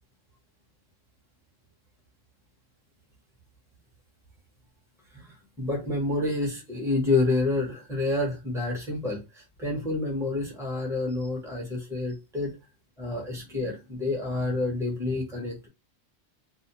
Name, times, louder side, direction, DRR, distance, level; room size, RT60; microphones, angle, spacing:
voice 1, 5.1-12.5 13.0-15.7, left 2 dB, 5° right, -1 dB, 0.8 m, -28 dB
2.6 x 2.0 x 2.9 m, 0.26 s
omnidirectional pair, 1.3 m